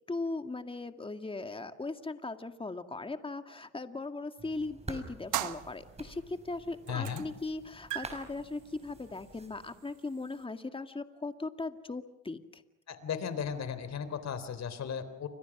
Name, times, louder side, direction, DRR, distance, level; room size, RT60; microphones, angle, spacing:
voice 1, 0.1-12.6, left 3 dB, 15° left, 8 dB, 2.0 m, -38 dB
sound 1, 4.4-9.8, right 2 dB, 20° right, 5.7 m, -49 dB
sound 2, 5.3-6.3 6.9-7.4 7.7-10.4, right 14 dB, 85° right, 1.3 m, -39 dB
voice 2, 6.9-7.3 12.9-15.3, left 7 dB, 60° left, 12 dB, 3.6 m, -36 dB
29.5 x 25.5 x 6.1 m, 0.91 s
cardioid pair, 90°, 30 cm